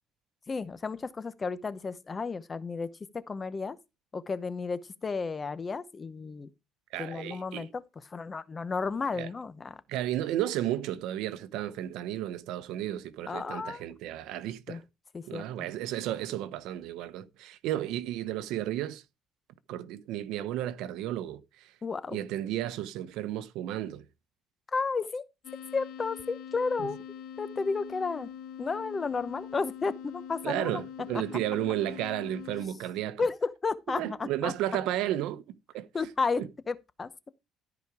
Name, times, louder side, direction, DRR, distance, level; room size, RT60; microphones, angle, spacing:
voice 1, 0.5-3.8 4.1-6.5 7.0-7.8 8.1-9.8 13.3-13.8 14.7-14.8 15.1-15.4 21.8-22.2 24.7-25.2 25.7-27.0 27.4-28.3 28.6-30.8 33.2-34.5 35.9-37.1, left 4 dB, 25° left, 0.8 m, -32 dB
voice 2, 6.9-7.7 9.2-9.3 9.9-14.8 15.3-19.0 19.7-21.7 22.1-24.0 26.8-26.9 30.4-33.2 33.9-35.4 35.7-35.9 36.4-36.5, right 13 dB, 80° right, 1.0 m, -33 dB
sound 1, 25.4-32.7, left 8 dB, 85° left, 1.9 m, -43 dB
13.0 x 5.1 x 4.7 m
cardioid pair, 130°, 0 cm